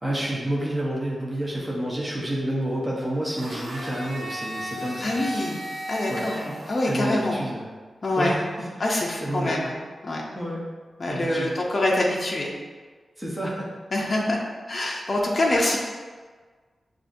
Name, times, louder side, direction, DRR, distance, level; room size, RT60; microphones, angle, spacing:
voice 1, 0.0-5.1 6.1-6.5 6.9-7.7 8.2-9.6 10.4-10.7 11.1-11.5 13.2-13.7, right 1 dB, 10° right, -5 dB, 0.7 m, -29 dB
Domestic sounds home sounds, 3.4-7.4, equal, 80° right, 1.0 m, -35 dB
voice 2, 5.0-5.6 5.9-7.4 8.0-8.3 8.8-9.8 10.0-10.2 11.0-12.5 13.9-14.4 14.7-15.8, left 1 dB, 35° left, -3 dB, 0.5 m, -25 dB
6.6 x 2.4 x 2.5 m, 1.5 s
wide cardioid pair, 165°, 0 cm